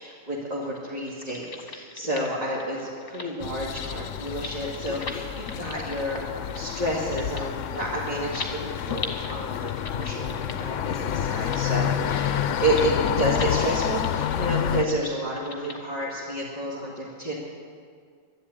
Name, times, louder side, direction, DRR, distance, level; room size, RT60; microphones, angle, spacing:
voice 1, 0.0-17.4, right 1 dB, 30° right, -6 dB, 2.4 m, -30 dB
sound 1, 1.0-15.8, left 3 dB, 45° left, 1.5 m, -41 dB
sound 2, 3.4-14.8, left 9 dB, 70° left, 0.9 m, -29 dB
12.5 x 11.5 x 9.8 m, 2.1 s
omnidirectional pair, 1.3 m